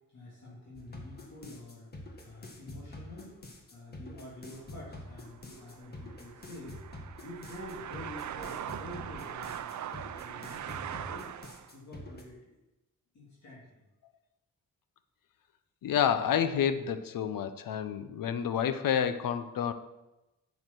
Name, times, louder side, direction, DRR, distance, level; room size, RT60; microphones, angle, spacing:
voice 1, 0.0-1.9 2.2-3.4 3.7-6.8 7.2-9.7 10.1-11.3 11.7-12.6 13.1-13.8, left 1 dB, 55° left, -6 dB, 3.1 m, -48 dB
sound 1, 0.7-12.2, left 1 dB, 30° left, 1.6 m, -47 dB
sound 2, 4.6-11.7, right 9 dB, 60° right, 0.6 m, -41 dB
voice 2, 15.8-19.7, left 8 dB, 80° left, 11 dB, 0.9 m, -29 dB
9.6 x 7.2 x 6.1 m, 0.99 s
wide cardioid pair, 160°, 33 cm